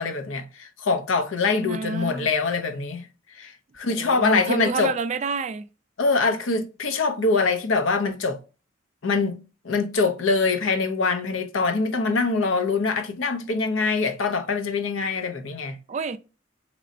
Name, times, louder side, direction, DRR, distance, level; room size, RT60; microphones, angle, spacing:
voice 1, 0.0-3.1 3.4-4.9 6.0-8.4 9.0-15.8, left 4 dB, 90° left, 0.7 m, -24 dB
voice 2, 1.6-2.3 3.9-5.7 15.9-16.2, right 4 dB, 35° right, 0.3 m, -29 dB
4.1 x 3.0 x 2.5 m
head